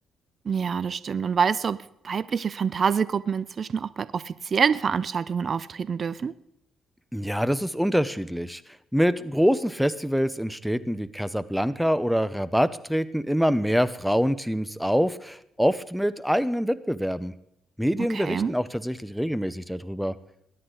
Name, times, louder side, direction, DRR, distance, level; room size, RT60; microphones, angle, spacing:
voice 1, 0.5-1.8 2.0-6.3 18.1-18.5, right 6 dB, 45° right, 17 dB, 0.5 m, -26 dB
voice 2, 7.1-8.6 8.9-17.3 17.8-20.1, equal, ahead, 16 dB, 0.6 m, -25 dB
21.5 x 9.8 x 3.9 m, 0.76 s
cardioid pair, 90°, 0 cm